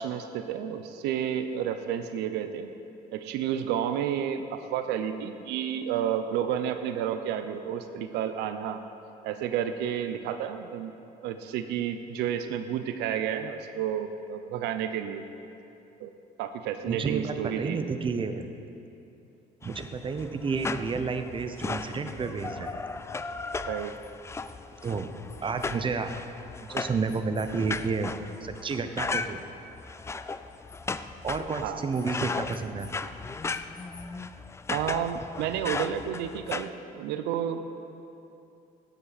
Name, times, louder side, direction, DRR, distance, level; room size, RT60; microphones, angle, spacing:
voice 1, 0.0-2.7 3.1-8.8 9.2-10.9 11.2-15.3 16.0-16.1 16.4-17.8 23.7-23.9 31.6-31.8 34.7-37.6, right 9 dB, 90° right, 9 dB, 0.6 m, -31 dB
voice 2, 16.9-18.5 19.6-22.7 24.8-25.1 25.4-26.2 26.6-28.1 28.4-29.4 31.2-32.9, right 4 dB, 30° right, 8 dB, 0.8 m, -31 dB
sound 1, 19.6-36.7, left 4 dB, 15° left, 0.4 m, -36 dB
17.0 x 8.6 x 4.1 m, 2.7 s
cardioid pair, 110°, 17 cm